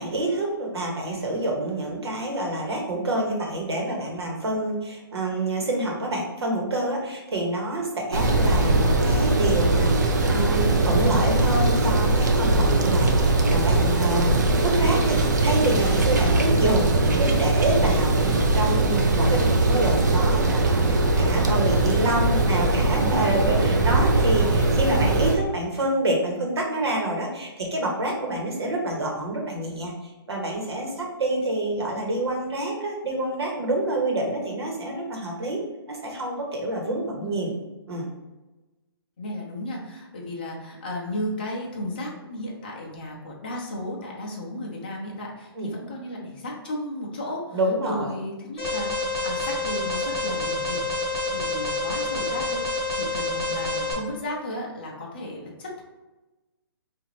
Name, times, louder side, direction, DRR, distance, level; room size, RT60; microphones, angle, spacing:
voice 1, 0.0-14.3 14.6-29.9 30.3-35.6 35.9-37.5 37.9-38.1 45.6-45.7 47.5-48.1, right 1 dB, 90° right, 0 dB, 1.1 m, -27 dB
sound 1, 8.1-25.4, right 2 dB, 45° right, 0.4 m, -21 dB
voice 2, 22.3-23.4 37.2-37.6 39.2-48.9 49.2-55.8, left 1 dB, 20° left, -2 dB, 0.5 m, -34 dB
Alarm, 48.6-53.9, left 2 dB, ahead, 0.9 m, -28 dB
3.9 x 2.5 x 3.1 m, 1.1 s
hypercardioid pair, 180°, 13 cm